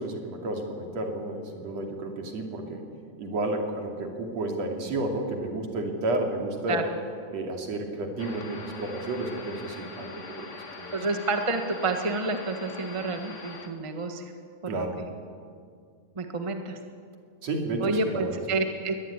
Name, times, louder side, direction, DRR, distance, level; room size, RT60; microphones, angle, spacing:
voice 1, 0.0-2.8 3.2-6.8 7.3-10.5 10.8-11.0 14.7-15.0 17.4-18.4, right 2 dB, 60° right, 2 dB, 3.8 m, -31 dB
sound 1, 8.2-13.7, left 3 dB, 30° left, 1.4 m, -42 dB
voice 2, 10.9-14.3 14.6-15.0 16.1-16.8 17.8-18.9, right 3 dB, 25° right, 5 dB, 0.6 m, -29 dB
22.5 x 19.0 x 9.9 m, 2.2 s
omnidirectional pair, 3.5 m